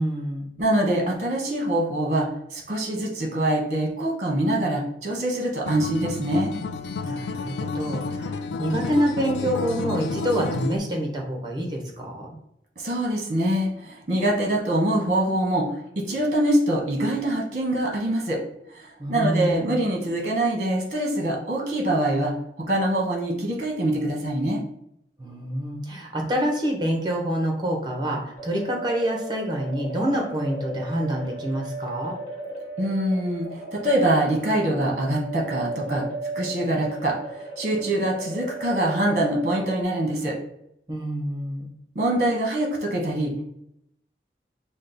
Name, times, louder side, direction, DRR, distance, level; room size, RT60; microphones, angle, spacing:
voice 1, 0.0-0.5 7.0-12.4 19.0-19.8 25.2-32.2 40.9-41.7, right 1 dB, 25° right, 1 dB, 0.9 m, -27 dB
voice 2, 0.6-6.5 12.8-18.4 18.7-22.3 22.7-24.6 32.8-36.0 36.3-37.2 37.6-40.4 41.9-43.4, right 1 dB, 45° right, -1 dB, 1.1 m, -24 dB
Acoustic guitar, 5.7-10.8, left 4 dB, 85° left, 0.4 m, -30 dB
sound 1, 28.3-39.8, right 2 dB, 40° left, 1.3 m, -35 dB
5.1 x 2.2 x 3.9 m, 0.77 s
head